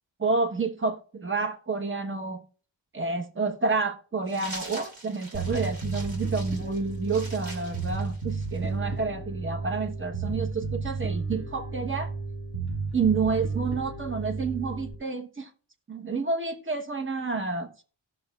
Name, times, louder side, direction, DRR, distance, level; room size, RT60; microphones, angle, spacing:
voice 1, 0.2-2.4 2.9-12.1 12.9-15.5 15.9-17.8, right 4 dB, 25° right, 1.1 m, -29 dB
sound 1, 4.3-8.7, right 2 dB, 75° right, 2.9 m, -43 dB
Bass guitar, 5.3-14.9, right 4 dB, 55° right, 5.1 m, -32 dB
17.5 x 6.6 x 2.4 m
wide cardioid pair, 140°, 45 cm